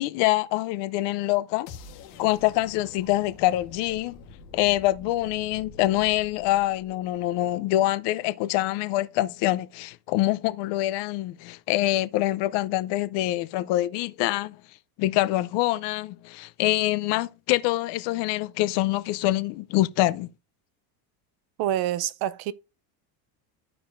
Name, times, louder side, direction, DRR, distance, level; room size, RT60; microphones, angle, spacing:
voice 1, 0.0-1.7 2.2-4.2 4.5-14.6 15.0-20.3, left 16 dB, 60° left, 0.7 m, -25 dB
sound 1, 1.7-7.6, left 5 dB, 80° left, 1.5 m, -47 dB
voice 2, 21.6-22.5, right 12 dB, 50° right, 0.6 m, -27 dB
13.5 x 4.8 x 2.6 m
supercardioid pair, 125°, 47 cm